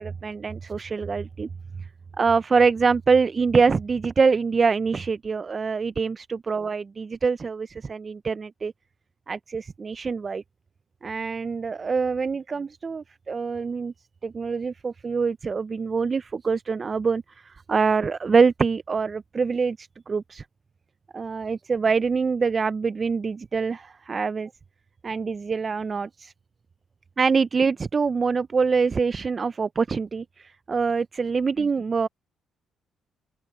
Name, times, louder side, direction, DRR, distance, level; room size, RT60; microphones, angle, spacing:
voice 1, 0.0-1.5 2.2-8.7 9.3-10.4 11.0-13.9 14.2-20.4 21.1-24.5 25.0-26.3 27.2-32.1, right 5 dB, 35° right, 0.4 m, -24 dB
open air
cardioid pair, 90°, 0 cm